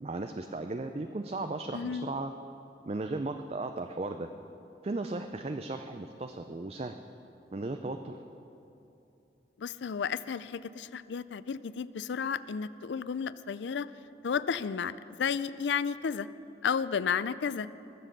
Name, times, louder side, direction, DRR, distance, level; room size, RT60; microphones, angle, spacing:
voice 1, 0.0-2.3 2.9-4.3 4.8-7.0 7.5-8.2, right 2 dB, 35° right, 7 dB, 0.4 m, -36 dB
voice 2, 1.7-2.1 9.6-13.9 14.2-16.3 16.6-17.7, left 6 dB, 80° left, 16 dB, 0.4 m, -32 dB
20.5 x 7.5 x 6.7 m, 2.8 s
head